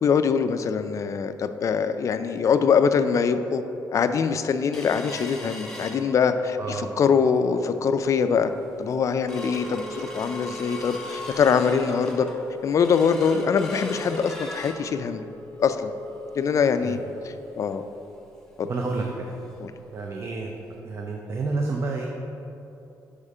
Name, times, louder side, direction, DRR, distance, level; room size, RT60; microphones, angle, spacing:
voice 1, 0.0-3.6 3.9-8.5 8.8-12.3 12.6-15.2 15.6-15.9 16.4-17.0 17.2-17.8 18.6-18.7 19.6-19.7, left 6 dB, 50° left, 10 dB, 0.3 m, -23 dB
sound 1, 4.7-6.6 7.0-7.1 7.4-7.8 8.3-8.4 8.7-19.2 19.6-19.7 20.0-20.2 20.7-20.8, left 1 dB, 5° left, 0.9 m, -39 dB
voice 2, 6.6-7.0 16.8-17.0 18.7-19.4 19.9-20.5 20.8-22.1, right 3 dB, 40° right, 1 dB, 0.5 m, -29 dB
4.9 x 4.9 x 5.4 m, 2.9 s
cardioid pair, 105°, 7 cm